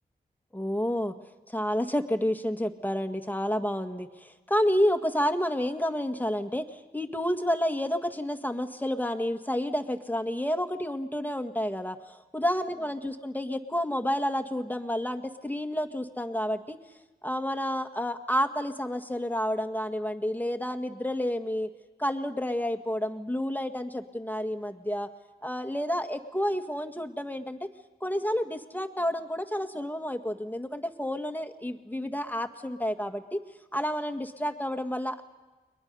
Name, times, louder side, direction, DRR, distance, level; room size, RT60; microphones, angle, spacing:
voice 1, 0.5-1.2 1.5-16.8 17.2-21.7 22.0-25.1 25.4-27.7 28.0-33.4 33.7-35.2, equal, 10° left, 6 dB, 1.7 m, -30 dB
30.0 x 22.0 x 5.5 m, 1.2 s
cardioid pair, 55°, 17 cm